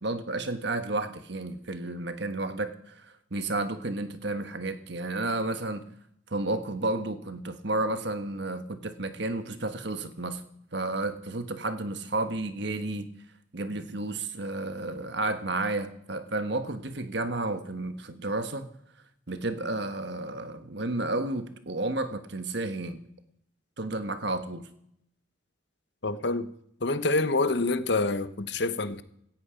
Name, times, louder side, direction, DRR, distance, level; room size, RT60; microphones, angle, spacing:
voice 1, 0.0-5.9 6.3-10.4 10.7-13.1 13.5-18.7 19.3-23.0 23.8-24.6, right 2 dB, 60° right, 1.5 m, -32 dB
voice 2, 26.0-26.5 26.8-29.0, left 2 dB, 60° left, 1.0 m, -27 dB
17.5 x 13.5 x 5.2 m
head